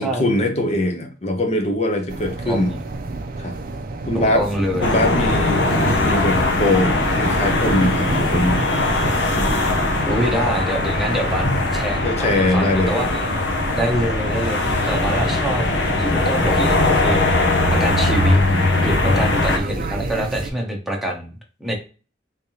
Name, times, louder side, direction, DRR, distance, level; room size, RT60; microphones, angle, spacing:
voice 1, 0.0-2.7 3.4-3.6 4.1-4.5 4.7-5.6 6.0-8.7 11.4-11.6 12.0-13.1 19.1-19.2, left 1 dB, 35° left, 5 dB, 0.7 m, -22 dB
sound 1, 2.1-20.5, right 2 dB, 50° right, 0.5 m, -29 dB
voice 2, 2.5-2.8 4.1-4.9 5.2-5.4 10.1-11.5 11.7-13.2 13.8-15.7 16.0-17.2 17.7-18.4 18.8-21.7, equal, ahead, 0 dB, 0.8 m, -25 dB
sound 2, 4.8-19.6, left 2 dB, 75° left, 0.8 m, -20 dB
3.5 x 3.3 x 2.8 m, 0.36 s
head